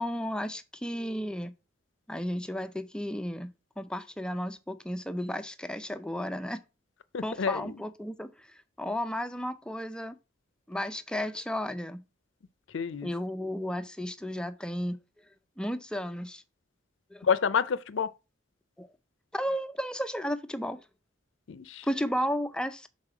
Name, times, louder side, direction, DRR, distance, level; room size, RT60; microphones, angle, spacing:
voice 1, 0.0-1.5 2.1-6.6 7.2-10.2 10.7-12.0 13.0-15.0 15.6-16.4 17.1-17.3 18.8-18.9 19.3-20.8 21.9-22.9, equal, 5° left, 0.4 m, -33 dB
voice 2, 7.1-7.8 12.7-13.1 17.2-18.1 21.5-21.9, left 6 dB, 80° left, 0.5 m, -29 dB
6.4 x 4.1 x 4.8 m
head